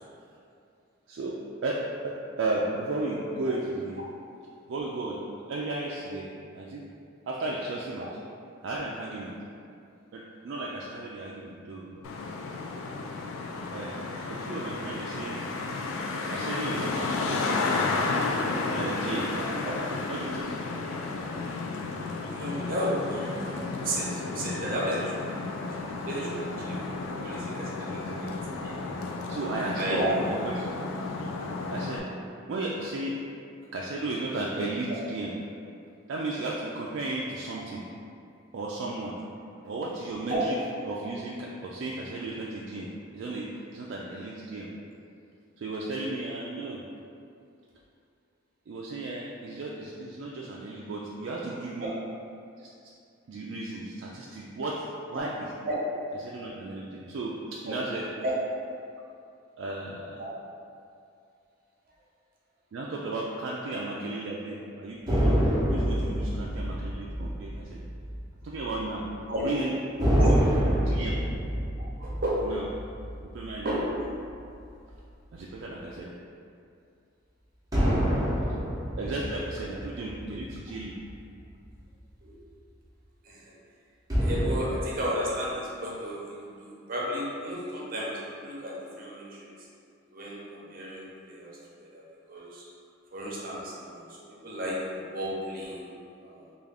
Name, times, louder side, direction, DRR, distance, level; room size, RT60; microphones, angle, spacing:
voice 1, 1.1-4.0 4.7-5.2 5.5-6.8 7.3-8.1 8.6-9.3 10.1-12.0 13.7-14.0 14.3-15.4 16.3-17.6 18.7-19.3 20.1-20.5 27.9-28.3 29.3-30.0 30.4-30.7 31.7-32.1 32.5-33.2 33.7-35.3 36.1-37.8 38.5-39.1 39.6-40.6 40.8-42.9 43.1-44.7 45.6-46.8 48.7-51.9 52.6-52.7 53.3-55.5 56.2-58.0 59.6-60.2 62.7-67.9 68.4-69.0 69.4-70.0 70.2-71.2 72.4-72.6 73.3-73.7 75.3-76.1 79.0-81.0, right 2 dB, 60° right, -4 dB, 0.3 m, -34 dB
Traffic noise roadway noise, 12.0-32.0, left 3 dB, 85° left, 0.3 m, -32 dB
voice 2, 22.3-28.7 29.7-30.2 40.3-40.4 55.1-55.2 55.6-55.8 57.6-57.7 58.2-58.3 60.2-60.3 69.3-69.5 70.2-70.3 72.0-72.5 73.6-73.9 82.2-82.4 83.2-83.5 84.2-89.5 90.1-92.7 93.1-95.9 96.2-96.4, equal, 45° right, -4 dB, 0.7 m, -33 dB
sound 1, 65.1-68.8 69.0-69.2 70.0-74.6 77.7-81.3 84.1-84.6, equal, 20° right, 0.8 m, -27 dB
3.5 x 2.4 x 3.4 m, 2.4 s
head